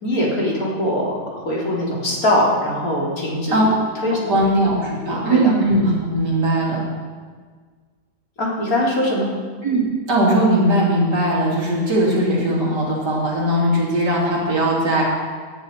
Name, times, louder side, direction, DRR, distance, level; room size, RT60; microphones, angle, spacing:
voice 1, 0.0-1.1 1.4-3.7 4.0-4.4 5.0-5.5 8.4-9.3, left 1 dB, 60° left, -4 dB, 3.6 m, -21 dB
voice 2, 4.3-6.8 9.6-9.8 10.1-15.0, right 1 dB, 85° right, -4 dB, 3.8 m, -19 dB
17.5 x 10.0 x 4.4 m, 1.5 s
omnidirectional pair, 1.8 m